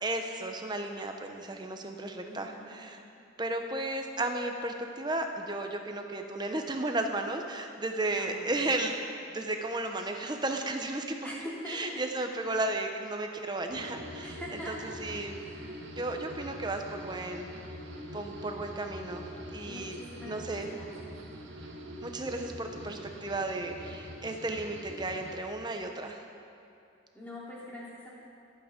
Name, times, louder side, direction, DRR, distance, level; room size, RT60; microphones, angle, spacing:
voice 1, 0.0-3.0 3.4-9.0 9.3-11.4 11.7-14.4 14.7-15.4 15.9-17.5 18.1-20.0 20.2-20.7 22.0-26.2, right 2 dB, 20° right, 4 dB, 1.0 m, -34 dB
voice 2, 2.2-2.8 8.1-8.6 11.2-12.0 14.2-14.9 15.4-15.9 19.6-21.1 27.1-28.1, left 1 dB, 10° left, -7 dB, 3.2 m, -44 dB
sound 1, 13.7-25.4, equal, 75° right, 1.8 m, -44 dB
25.5 x 8.9 x 5.3 m, 2.6 s
head